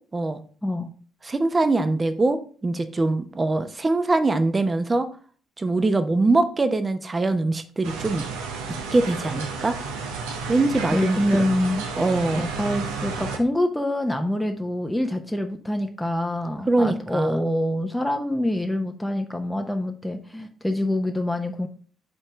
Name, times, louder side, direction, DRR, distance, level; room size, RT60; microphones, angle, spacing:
voice 1, 1.2-5.1 5.6-8.2 8.9-9.8 10.5-11.4 12.0-12.5 16.7-17.4, right 2 dB, 25° right, 10 dB, 0.9 m, -23 dB
sound 1, 7.8-13.4, right 4 dB, 75° right, 0.9 m, -32 dB
voice 2, 10.9-11.8 12.3-21.7, left 1 dB, 5° left, 4 dB, 0.8 m, -25 dB
5.4 x 4.3 x 6.0 m, 0.43 s
figure-of-eight pair, 45°, 0 cm